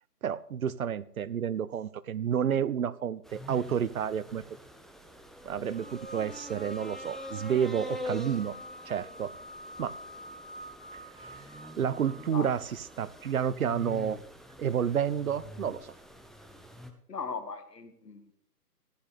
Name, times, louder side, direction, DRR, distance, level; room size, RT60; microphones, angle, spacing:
voice 1, 0.2-4.4 5.4-8.6 8.9-9.3 9.8-10.0 11.1-12.6 13.0-14.2 14.6-15.9, right 8 dB, 60° right, 18 dB, 0.6 m, -30 dB
sound 1, 3.2-16.9, left 1 dB, ahead, 0.3 m, -45 dB
sound 2, 5.7-13.5, left 1 dB, 30° right, 1.0 m, -47 dB
voice 2, 17.1-18.3, left 5 dB, 80° left, 9 dB, 1.8 m, -38 dB
14.5 x 10.0 x 3.3 m, 0.69 s
hypercardioid pair, 160°, 48 cm